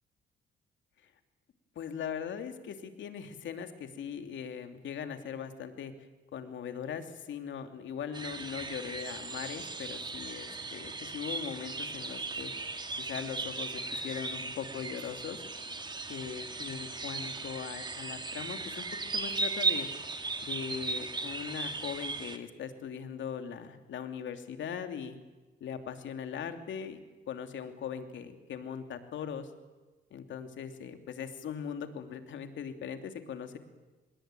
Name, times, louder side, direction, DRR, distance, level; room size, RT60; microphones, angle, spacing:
voice 1, 1.8-5.9 6.3-12.5 13.0-15.4 16.1-18.9 19.1-19.9 20.4-25.2 25.6-27.0 27.3-29.5 30.1-33.6, left 7 dB, 70° left, 7 dB, 2.8 m, -40 dB
sound 1, 8.1-22.4, right 3 dB, 20° right, 2.1 m, -37 dB
25.0 x 21.0 x 9.1 m, 1.2 s
cardioid pair, 90°, 20 cm